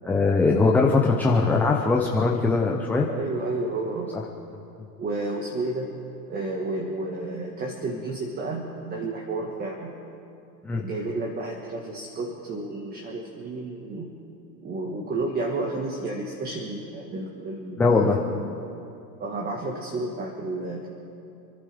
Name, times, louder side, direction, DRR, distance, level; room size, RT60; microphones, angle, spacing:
voice 1, 0.0-3.1 10.6-10.8 17.8-18.2, left 3 dB, 5° left, 0 dB, 0.4 m, -21 dB
voice 2, 3.1-4.1 5.0-5.9 6.3-9.9 10.7-14.1 14.6-18.1 19.2-20.9, right 2 dB, 20° right, 1 dB, 1.5 m, -31 dB
28.5 x 11.0 x 3.4 m, 2.8 s
hypercardioid pair, 130°, 49 cm